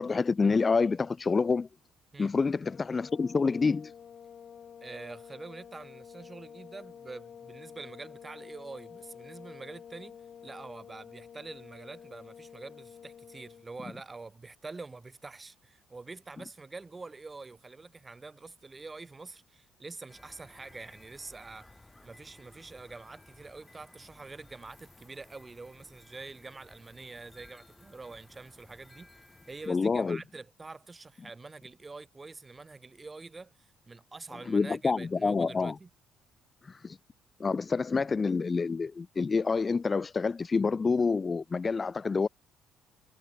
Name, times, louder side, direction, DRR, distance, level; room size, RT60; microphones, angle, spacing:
voice 1, 0.0-1.7 2.2-3.9 29.7-30.2 34.5-35.7 36.7-37.0 37.4-42.3, left 4 dB, 30° left, 0.9 m, -27 dB
sound 1, 2.6-13.7, left 8 dB, 50° left, 2.7 m, -49 dB
voice 2, 4.8-21.7 22.0-35.9, right 3 dB, 25° right, 2.8 m, -46 dB
sound 2, 20.1-29.7, left 2 dB, 15° left, 6.1 m, -57 dB
cardioid pair, 85°, 0 cm